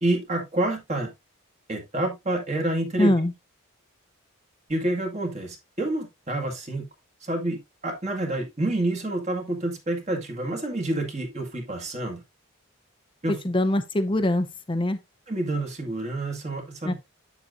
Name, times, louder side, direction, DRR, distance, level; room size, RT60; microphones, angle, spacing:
voice 1, 0.0-1.1 1.7-3.1 4.7-6.9 7.2-12.2 13.2-13.4 15.3-16.9, right 1 dB, 30° right, 1.7 m, -28 dB
voice 2, 3.0-3.3 13.4-15.0 16.8-16.9, left 1 dB, 25° left, 0.7 m, -23 dB
7.9 x 7.2 x 2.6 m
head